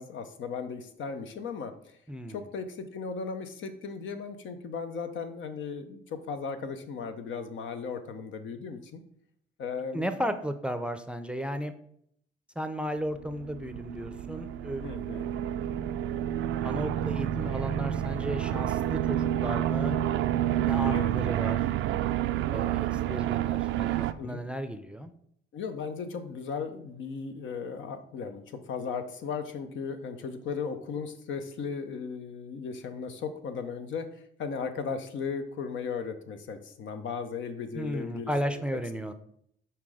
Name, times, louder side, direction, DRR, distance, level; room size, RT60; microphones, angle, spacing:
voice 1, 0.0-1.7 2.3-9.0 9.6-10.1 14.8-15.3 20.9-21.1 22.9-23.2 24.2-24.4 25.5-34.1 34.4-38.6, left 5 dB, 75° left, 8 dB, 0.8 m, -36 dB
voice 2, 2.1-2.5 9.9-11.7 12.6-14.8 16.6-19.9 20.6-21.6 22.5-25.1 37.7-39.1, equal, 5° right, 9 dB, 0.5 m, -34 dB
sound 1, 13.1-24.1, right 12 dB, 80° right, 0.4 m, -29 dB
5.8 x 4.4 x 4.9 m, 0.70 s
cardioid pair, 90°, 20 cm